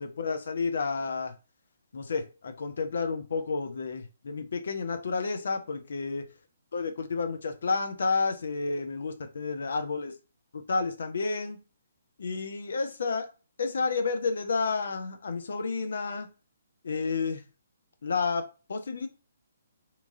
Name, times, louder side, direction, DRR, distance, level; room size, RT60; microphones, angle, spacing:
voice 1, 0.0-1.3 1.9-6.2 6.7-10.1 10.5-11.6 12.2-13.3 13.6-16.3 16.8-17.4 18.0-19.1, left 4 dB, 60° left, 7 dB, 0.5 m, -30 dB
2.9 x 2.3 x 2.6 m, 0.32 s
figure-of-eight pair, 130°, 0 cm